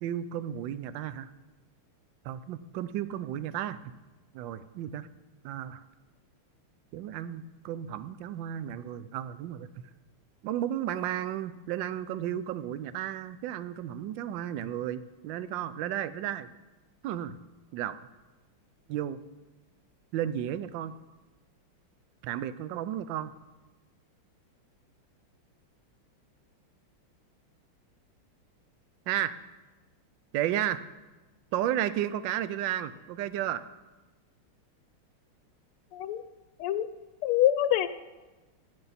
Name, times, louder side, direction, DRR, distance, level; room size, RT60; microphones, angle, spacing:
voice 1, 0.0-1.3 2.2-3.8 4.3-5.1 5.4-5.8 6.9-9.7 10.4-16.5 17.0-17.4 17.7-18.0 18.9-19.2 20.1-20.9 22.2-23.3 29.1-29.3 30.3-30.8 31.5-33.6, right 11 dB, 75° right, 14 dB, 1.1 m, -33 dB
voice 2, 35.9-36.2 36.6-36.9 37.2-37.9, left 12 dB, 85° left, 13 dB, 1.5 m, -25 dB
15.0 x 10.0 x 4.1 m, 1.2 s
omnidirectional pair, 2.4 m